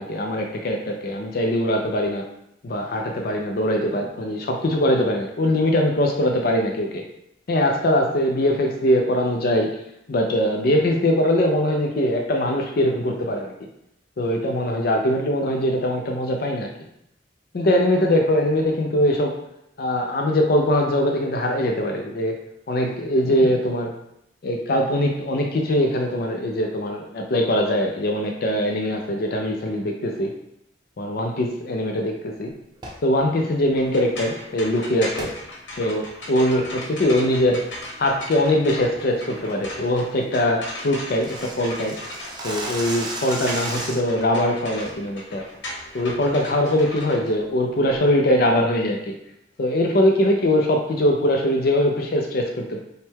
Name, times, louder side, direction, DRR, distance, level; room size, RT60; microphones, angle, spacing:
voice 1, 0.0-2.2 2.6-7.0 7.5-9.7 10.1-13.5 14.2-16.7 17.5-19.3 19.8-22.3 22.7-23.9 24.4-30.3 31.0-32.5 33.0-35.3 35.8-37.6 38.0-42.0 42.4-45.4 45.9-49.1 49.6-52.8, left 1 dB, 55° left, 2 dB, 0.5 m, -22 dB
sound 1, 32.7-33.1 35.2-35.4 35.8-35.9 36.5-36.7 37.1-37.5 37.8-38.1 38.4-38.5 38.9-39.2 39.5-39.6 39.9-40.0 40.2-40.3 40.6-44.2, right 1 dB, 25° right, 0.6 m, -34 dB
sound 2, 33.8-48.0, left 1 dB, 85° left, 1.1 m, -37 dB
5.5 x 2.2 x 3.6 m, 0.79 s
head